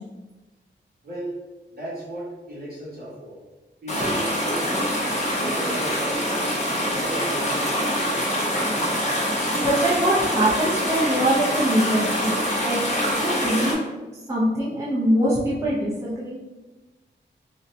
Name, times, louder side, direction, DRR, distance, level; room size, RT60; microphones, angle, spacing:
voice 1, 1.0-1.4 1.7-3.4 3.8-5.1 5.3-6.4 6.8-8.3, right 1 dB, 50° right, -7 dB, 1.2 m, -35 dB
sound 1, 3.9-13.7, equal, 35° left, 0.8 m, -25 dB
voice 2, 9.6-12.4 12.6-12.8 13.2-13.8 14.3-16.4, right 1 dB, 15° right, -8 dB, 0.5 m, -23 dB
3.8 x 2.1 x 2.6 m, 1.2 s
wide cardioid pair, 160°, 19 cm